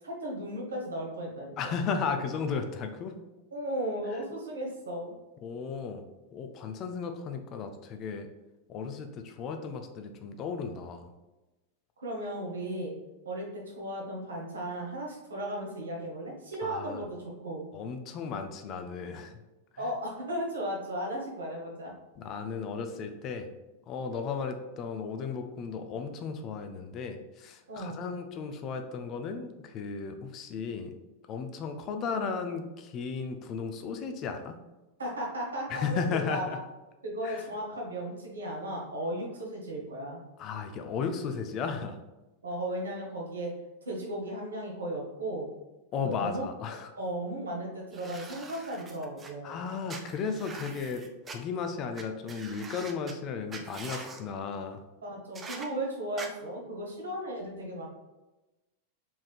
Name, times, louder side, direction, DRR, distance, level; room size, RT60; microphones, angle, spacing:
voice 1, 0.0-1.7 3.5-5.1 12.0-12.9 13.2-17.6 19.8-21.9 27.7-28.1 35.0-36.6 37.0-40.2 42.4-43.5 43.8-45.5 46.0-46.4 46.9-49.7 55.0-57.9, right 1 dB, 70° right, -1 dB, 1.1 m, -35 dB
voice 2, 1.6-3.2 5.4-6.0 6.3-8.3 8.7-11.1 16.6-17.0 17.7-19.3 19.7-19.9 22.2-23.5 23.9-30.9 31.3-34.6 35.7-36.6 37.2-37.4 40.4-42.0 45.9-46.9 49.4-54.8, left 5 dB, 35° left, 6 dB, 0.4 m, -35 dB
sound 1, 47.9-49.3 49.9-51.4 51.9-52.0 52.3-53.1 53.5-54.2 55.3-55.7 56.2-56.3, right 4 dB, 20° right, 0.5 m, -43 dB
4.3 x 3.6 x 2.3 m, 1.1 s
figure-of-eight pair, 90°, 0 cm